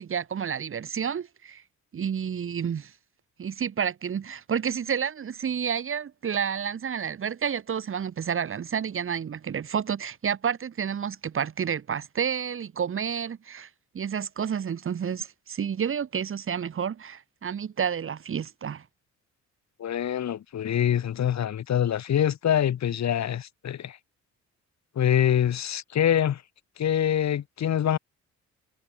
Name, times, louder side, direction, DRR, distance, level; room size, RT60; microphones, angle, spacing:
voice 1, 0.0-1.6 1.9-2.9 3.4-13.7 13.9-18.8, right 7 dB, 45° right, 1.5 m, -30 dB
voice 2, 19.8-24.0 25.0-26.4 26.8-28.0, left 10 dB, 65° left, 4.3 m, -25 dB
cardioid pair, 90°, 30 cm